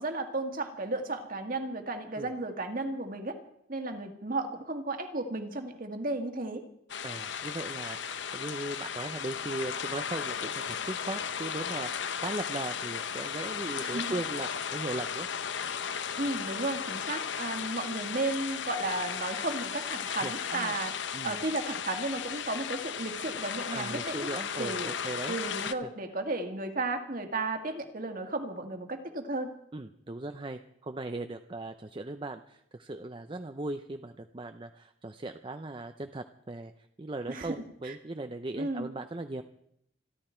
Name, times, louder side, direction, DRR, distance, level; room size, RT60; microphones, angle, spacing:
voice 1, 0.0-3.4 3.7-6.6 13.8-14.1 16.2-24.3 24.6-24.9 25.2-29.5 37.3-38.0 38.6-38.9, right 2 dB, 45° right, 5 dB, 1.9 m, -34 dB
sound 1, 6.9-25.7, left 7 dB, 65° left, 0.8 m, -35 dB
voice 2, 7.0-15.3 20.0-20.8 21.1-21.5 23.7-25.4 25.7-25.9 29.7-36.7 37.0-39.4, right 2 dB, 25° right, 8 dB, 0.6 m, -38 dB
27.0 x 11.5 x 4.5 m, 0.74 s
head